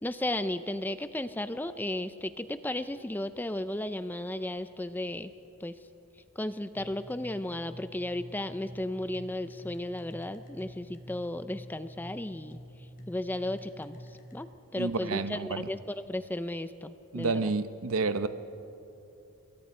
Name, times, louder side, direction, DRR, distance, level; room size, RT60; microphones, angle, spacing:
voice 1, 0.0-5.3 5.6-5.8 6.4-17.5, left 1 dB, 10° left, 12 dB, 0.4 m, -35 dB
sound 1, 6.7-14.3, equal, 40° left, 3.6 m, -47 dB
voice 2, 14.8-15.7 17.1-18.3, right 4 dB, 70° right, 11 dB, 0.8 m, -30 dB
27.0 x 22.5 x 4.3 m, 2.9 s
head